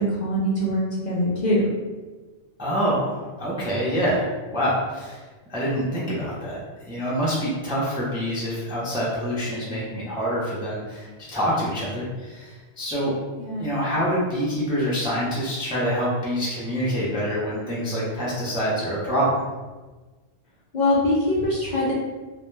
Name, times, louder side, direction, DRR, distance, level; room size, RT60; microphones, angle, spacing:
voice 1, 0.0-1.7 13.4-13.8 20.7-21.9, left 1 dB, 55° left, -7 dB, 0.5 m, -23 dB
voice 2, 2.6-5.2 5.5-6.6 6.9-13.1 13.6-19.4, equal, 5° right, -7 dB, 0.3 m, -26 dB
2.3 x 2.1 x 3.1 m, 1.3 s
omnidirectional pair, 1.1 m